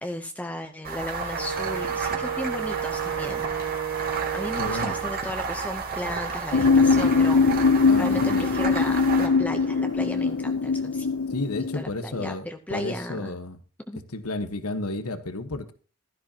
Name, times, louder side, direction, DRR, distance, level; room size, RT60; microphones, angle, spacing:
voice 1, 0.0-3.5 4.3-11.1 11.7-13.4 13.9-14.0, left 1 dB, 5° left, 5 dB, 0.8 m, -35 dB
sound 1, 0.8-10.2, right 5 dB, 45° right, 2.4 m, -32 dB
Wind instrument woodwind instrument, 1.3-5.3, right 8 dB, 80° right, 4.0 m, -32 dB
voice 2, 4.6-5.0 7.9-8.5 11.3-13.6 14.1-15.7, left 2 dB, 85° left, 9 dB, 1.4 m, -32 dB
sound 2, 6.5-11.8, left 4 dB, 70° left, 0.6 m, -21 dB
15.5 x 13.0 x 2.9 m, 0.36 s
head